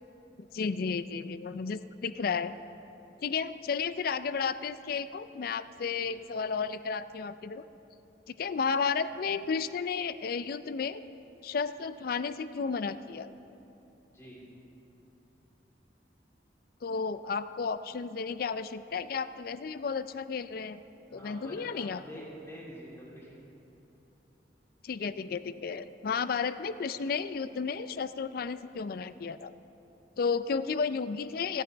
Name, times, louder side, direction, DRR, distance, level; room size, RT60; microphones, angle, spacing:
voice 1, 0.4-2.5 3.2-7.6 8.4-11.0 11.4-13.3 16.8-20.8 21.1-22.0 24.8-29.5 30.2-31.6, left 5 dB, 55° left, 14 dB, 0.4 m, -33 dB
voice 2, 14.1-14.4 21.1-23.4, equal, 15° left, -6 dB, 3.2 m, -47 dB
27.5 x 9.3 x 3.4 m, 3.0 s
head